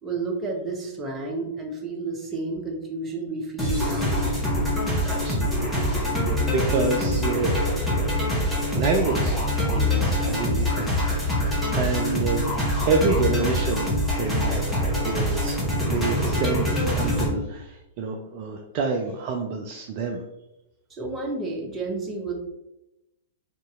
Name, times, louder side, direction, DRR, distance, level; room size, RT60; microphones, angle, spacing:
voice 1, 0.0-4.2 20.9-22.3, right 3 dB, 20° right, -1 dB, 0.8 m, -31 dB
sound 1, 3.6-17.3, left 1 dB, 5° left, 1.0 m, -24 dB
voice 2, 5.0-5.7 6.0-7.6 8.5-9.4 9.7-11.0 11.3-12.5 12.8-14.7 15.0-15.6 15.9-20.2, right 4 dB, 40° right, 2 dB, 0.4 m, -28 dB
3.0 x 2.8 x 3.5 m, 0.90 s
figure-of-eight pair, 105°, 0 cm